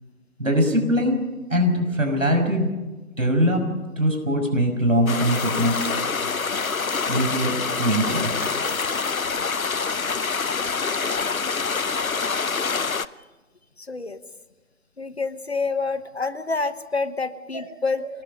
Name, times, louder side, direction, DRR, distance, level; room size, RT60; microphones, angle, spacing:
voice 1, 0.4-1.2 1.5-2.7 3.2-3.6 4.0-6.0 7.1-8.3 17.5-17.6 18.0-18.1, equal, 65° right, 5 dB, 6.0 m, -22 dB
sound 1, 5.0-6.0 6.4-7.3 7.7-9.2, right 2 dB, 10° right, 1.3 m, -44 dB
sound 2, 5.1-13.1, left 5 dB, 70° left, 0.9 m, -26 dB
voice 2, 13.8-14.2 15.0-18.1, left 4 dB, 45° left, 13 dB, 1.1 m, -27 dB
28.0 x 20.0 x 5.6 m, 1.2 s
figure-of-eight pair, 155°, 43 cm